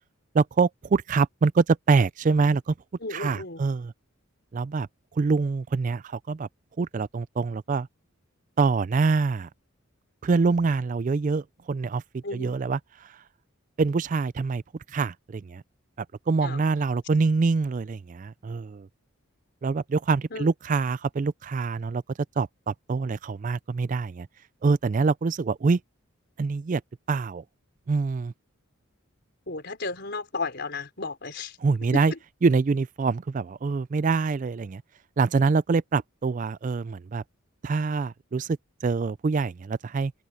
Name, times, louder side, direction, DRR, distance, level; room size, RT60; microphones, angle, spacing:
voice 1, 0.3-2.7 3.1-3.9 4.5-6.5 6.8-7.9 8.6-9.5 10.2-13.2 13.8-14.6 14.9-15.6 16.0-18.9 19.6-22.0 22.4-24.3 24.6-25.8 26.4-26.8 27.1-27.4 27.9-28.3 31.6-32.1 32.4-34.8 35.2-37.2 37.6-40.1, right 4 dB, 35° right, 0.3 m, -25 dB
voice 2, 3.0-3.6 12.2-12.5 16.4-16.6 20.3-20.5 29.5-31.6 32.1-32.2, left 3 dB, 50° left, 4.7 m, -34 dB
head